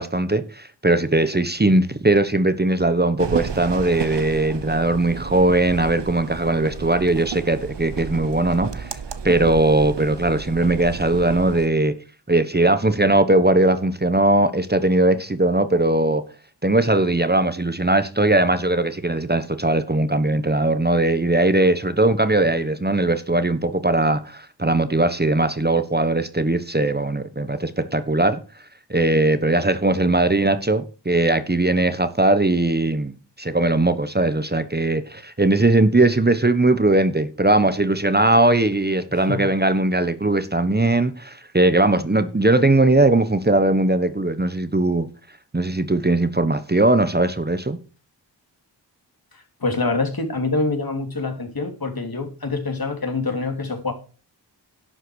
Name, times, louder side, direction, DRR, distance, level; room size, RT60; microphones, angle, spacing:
voice 1, 0.0-8.9 9.2-11.9 12.3-16.2 16.6-28.4 28.9-45.1 45.5-47.8, right 2 dB, 25° right, 1.2 m, -19 dB
sound 1, 3.2-11.7, right 6 dB, 80° right, 1.1 m, -32 dB
voice 2, 39.1-39.5 49.3-53.9, left 3 dB, 55° left, 3.2 m, -26 dB
11.5 x 7.9 x 6.3 m
wide cardioid pair, 50°, 42 cm